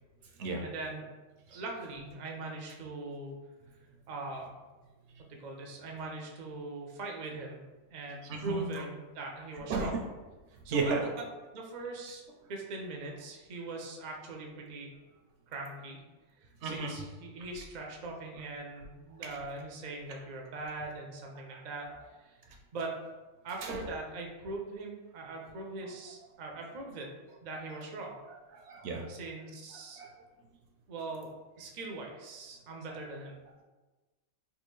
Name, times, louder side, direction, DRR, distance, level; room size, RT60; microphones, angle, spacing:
voice 1, 0.6-1.1 1.5-3.3 4.1-4.5 5.3-7.6 7.9-9.9 10.6-10.9 11.5-12.2 12.5-14.9 15.5-16.0 16.4-21.9 22.2-22.4 22.7-23.0 23.4-27.1 27.4-28.2 29.1-30.0 30.9-31.3 31.6-33.4, right 2 dB, 55° right, 1 dB, 0.5 m, -41 dB
voice 2, 8.2-8.8 9.7-9.9 10.7-11.0 16.6-17.0 19.2-19.4 21.5-21.6 23.6-23.8 28.5-29.0 30.0-30.1, right 4 dB, 70° right, 2 dB, 0.8 m, -34 dB
3.4 x 2.4 x 3.1 m, 1.2 s
omnidirectional pair, 1.3 m